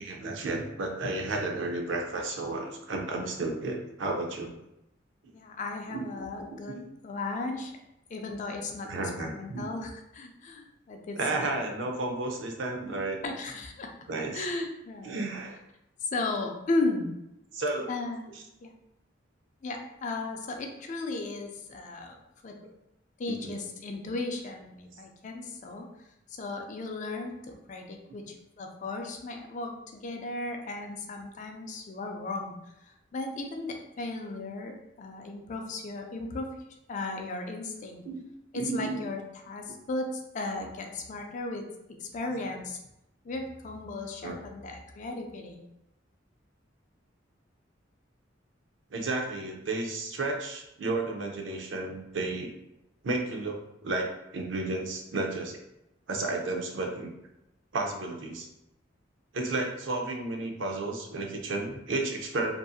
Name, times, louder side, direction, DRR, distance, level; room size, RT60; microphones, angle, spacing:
voice 1, 0.0-4.6 5.9-6.1 6.7-6.8 8.8-9.7 11.2-13.2 14.1-14.5 15.0-15.6 17.5-17.9 23.3-23.6 38.0-38.2 38.5-39.0 44.2-44.4 48.9-52.5 53.0-55.6 56.1-57.1 57.7-58.5 59.3-62.6, right 2 dB, 70° right, 2 dB, 0.5 m, -32 dB
voice 2, 5.3-7.7 8.1-8.9 9.2-11.5 13.2-13.9 14.3-15.3 16.0-17.1 17.9-18.3 18.6-18.7 19.6-22.2 22.4-22.6 23.2-25.9 26.4-32.6 32.8-36.5 36.9-38.0 38.5-39.2 39.5-41.6 42.0-42.8 43.2-45.6, left 2 dB, 40° left, 3 dB, 0.4 m, -35 dB
2.6 x 2.5 x 2.3 m, 0.87 s
head